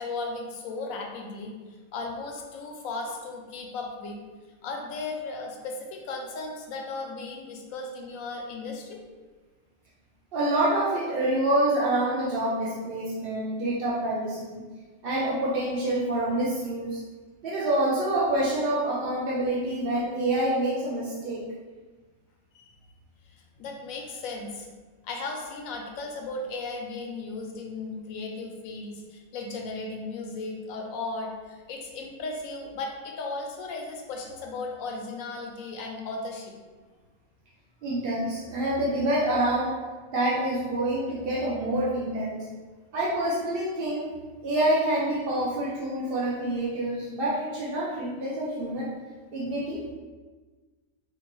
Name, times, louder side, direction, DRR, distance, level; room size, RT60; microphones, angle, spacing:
voice 1, 0.0-1.5 1.9-4.2 4.6-9.0 22.5-22.7 23.3-24.7 25.0-36.5, left 3 dB, 80° left, 1 dB, 1.0 m, -36 dB
voice 2, 10.3-14.6 15.0-17.0 17.4-21.4 37.8-39.7 40.1-42.5 42.9-44.1 44.4-48.9 49.3-49.8, right 1 dB, 55° right, -6 dB, 0.7 m, -27 dB
4.5 x 2.4 x 3.0 m, 1.4 s
omnidirectional pair, 1.4 m